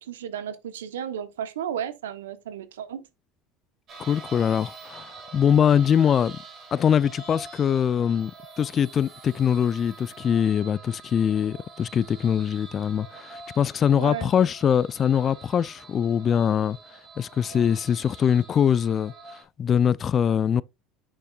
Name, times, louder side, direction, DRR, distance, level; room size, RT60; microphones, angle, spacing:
voice 1, 0.0-3.0 13.9-14.3, right 9 dB, 85° right, 1.0 m, -33 dB
sound 1, 3.9-19.4, right 4 dB, 45° right, 3.3 m, -45 dB
voice 2, 4.0-6.4 6.7-8.3 8.6-16.8 17.2-19.1 19.6-20.6, left 8 dB, 40° left, 0.4 m, -23 dB
8.5 x 6.4 x 2.4 m
hypercardioid pair, 80°, 0 cm